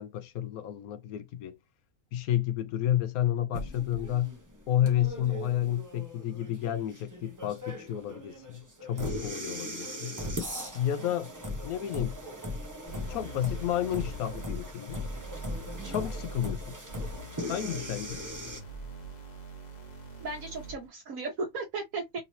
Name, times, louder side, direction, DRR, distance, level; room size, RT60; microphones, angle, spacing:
voice 1, 0.0-1.5 2.1-4.3 4.7-10.1 10.7-11.3 11.6-12.1 13.1-15.0 15.9-16.8 17.5-18.2, left 11 dB, 75° left, 1.0 m, -31 dB
sound 1, 3.5-18.6, left 1 dB, 15° right, 0.6 m, -39 dB
voice 2, 3.7-4.1 15.8-16.1 20.2-22.2, right 3 dB, 65° right, 1.5 m, -37 dB
sound 2, 12.9-20.9, right 2 dB, 30° left, 1.1 m, -44 dB
3.8 x 2.9 x 2.8 m
omnidirectional pair, 1.6 m